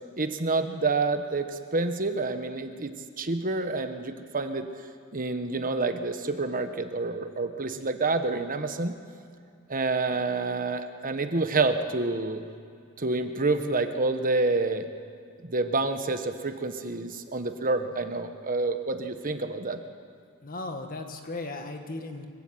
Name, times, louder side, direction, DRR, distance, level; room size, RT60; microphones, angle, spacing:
voice 1, 0.2-4.7 5.1-8.9 9.7-12.4 13.0-14.9 15.4-19.8, right 3 dB, 40° right, 8 dB, 1.3 m, -28 dB
voice 2, 20.4-22.3, left 2 dB, 40° left, 5 dB, 1.9 m, -36 dB
24.5 x 16.5 x 7.8 m, 2.3 s
head